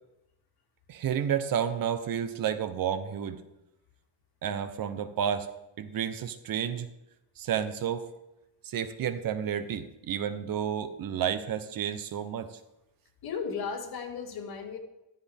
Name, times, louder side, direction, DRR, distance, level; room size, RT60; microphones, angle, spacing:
voice 1, 0.9-3.4 4.4-5.5 5.8-6.9 7.4-8.0 8.6-12.6, right 8 dB, 50° right, 10 dB, 0.9 m, -31 dB
voice 2, 13.2-14.8, left 6 dB, 50° left, 3 dB, 2.1 m, -35 dB
14.5 x 13.0 x 3.6 m, 0.92 s
cardioid pair, 180°, 45 cm